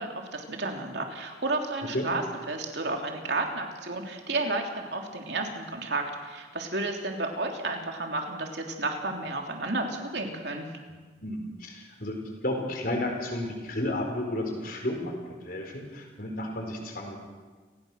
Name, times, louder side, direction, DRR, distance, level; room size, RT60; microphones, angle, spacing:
voice 1, 0.0-10.6, right 2 dB, 60° right, 2 dB, 3.2 m, -32 dB
voice 2, 10.9-12.1 12.4-15.1 15.4-17.2, left 1 dB, 50° left, 2 dB, 4.8 m, -32 dB
29.5 x 16.5 x 6.5 m, 1.4 s
head